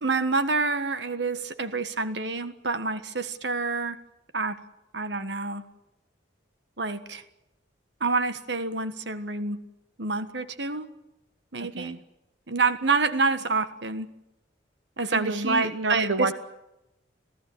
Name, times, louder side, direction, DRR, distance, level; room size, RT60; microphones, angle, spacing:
voice 1, 0.0-4.0 4.3-4.6 4.9-5.6 6.8-7.2 8.0-9.6 10.0-10.9 11.5-12.0 12.5-14.1 15.0-16.3, right 3 dB, 65° right, 11 dB, 1.5 m, -27 dB
voice 2, 11.6-12.0 15.1-16.3, right 3 dB, 80° right, 9 dB, 1.1 m, -29 dB
27.0 x 16.0 x 9.7 m, 0.93 s
head